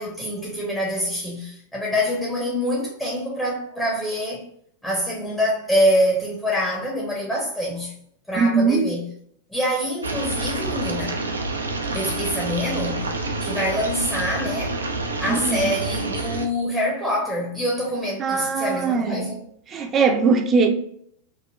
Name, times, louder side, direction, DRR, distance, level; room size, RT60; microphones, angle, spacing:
voice 1, 0.0-4.4 4.8-7.9 8.3-9.1 9.5-11.3 11.9-13.1 13.4-14.8 15.2-19.4, equal, 5° left, 0.8 m, -25 dB
voice 2, 8.3-8.9 15.3-15.7 18.2-19.2 19.7-20.7, right 4 dB, 25° right, 0.6 m, -20 dB
sound 1, 10.0-16.4, right 2 dB, 75° right, 0.4 m, -28 dB
5.2 x 2.2 x 2.3 m
figure-of-eight pair, 90°, 0 cm